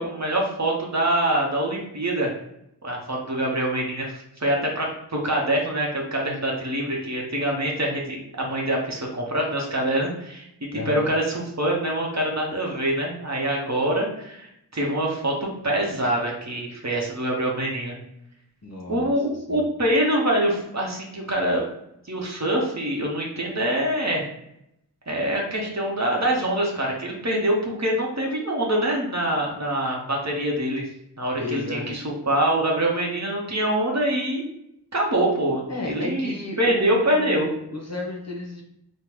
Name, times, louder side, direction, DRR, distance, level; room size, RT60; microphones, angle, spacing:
voice 1, 0.0-2.3 2.8-10.5 10.7-18.0 18.9-21.6 22.1-24.2 25.1-30.8 31.2-34.4 34.9-37.5, right 1 dB, 40° right, -2 dB, 0.8 m, -25 dB
voice 2, 10.7-11.1 18.6-19.1 19.5-19.6 31.4-32.0 35.7-38.6, left 3 dB, 40° left, -1 dB, 0.8 m, -34 dB
3.6 x 2.1 x 3.0 m, 0.79 s
wide cardioid pair, 45°, 42 cm